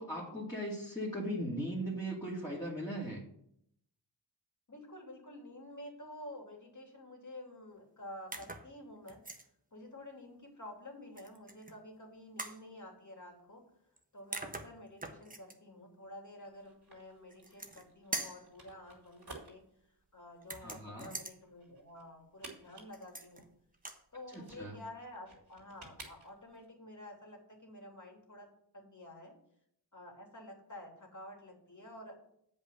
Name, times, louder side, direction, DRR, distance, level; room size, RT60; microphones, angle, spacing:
voice 1, 0.0-3.2 20.6-21.1 24.3-24.8, equal, 10° left, -6 dB, 2.6 m, -38 dB
voice 2, 4.7-9.2 9.7-13.6 14.1-19.6 20.1-23.4 24.1-28.5 28.7-29.3 29.9-32.2, left 1 dB, 40° left, 1 dB, 3.0 m, -50 dB
sound 1, 8.3-8.7 9.1-9.5 11.2-11.7 12.4-12.6 14.0-14.1 14.3-15.6 17.3-17.9 18.1-18.5 20.4-21.4 22.9-23.4 23.7-24.0, right 2 dB, 20° right, 1.2 m, -42 dB
sound 2, 16.4-26.7, right 3 dB, 60° right, 2.9 m, -55 dB
7.9 x 5.4 x 6.7 m, 0.71 s
cardioid pair, 60°, 44 cm